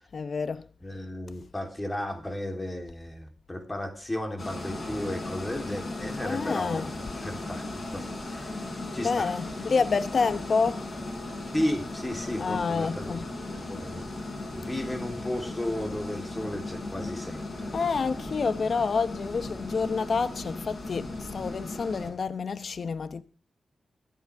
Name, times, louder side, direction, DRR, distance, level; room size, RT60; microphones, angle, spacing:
voice 1, 0.1-0.6 6.2-6.9 9.0-10.8 12.4-13.3 17.7-23.2, left 5 dB, 60° left, 0.9 m, -28 dB
voice 2, 0.8-9.3 11.5-13.2 13.5-14.1 14.5-18.4, left 1 dB, 15° left, 3.5 m, -34 dB
sound 1, 4.4-22.1, left 2 dB, 40° left, 5.9 m, -37 dB
25.0 x 8.8 x 3.5 m
cardioid pair, 75°, 0 cm